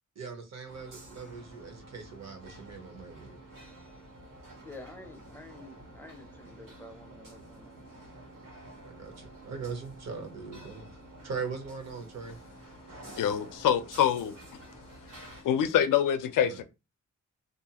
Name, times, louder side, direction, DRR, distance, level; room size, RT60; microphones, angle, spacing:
voice 1, 0.2-3.4 8.8-12.4 16.4-16.6, right 5 dB, 55° right, 0.8 m, -40 dB
sound 1, 0.7-15.4, right 1 dB, 80° right, 1.4 m, -50 dB
voice 2, 4.6-8.1, left 2 dB, 5° left, 0.5 m, -49 dB
voice 3, 13.2-14.3 15.2-16.6, left 9 dB, 80° left, 0.5 m, -26 dB
2.5 x 2.3 x 2.8 m
wide cardioid pair, 145°, 31 cm